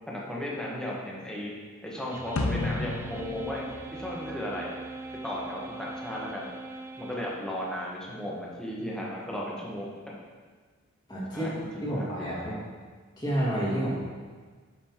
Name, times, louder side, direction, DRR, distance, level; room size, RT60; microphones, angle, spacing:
voice 1, 0.1-1.5 1.8-3.6 3.9-4.7 5.2-6.5 7.0-10.2 11.3-12.7, left 1 dB, 5° left, -5 dB, 1.2 m, -35 dB
sound 1, 2.1-7.9, right 3 dB, 15° right, 0.3 m, -42 dB
sound 2, 2.4-4.8, left 3 dB, 85° left, 0.5 m, -33 dB
voice 2, 11.1-11.5 11.8-12.6 13.2-14.0, right 1 dB, 20° left, -7 dB, 2.0 m, -29 dB
10.5 x 5.5 x 2.9 m, 1.5 s
head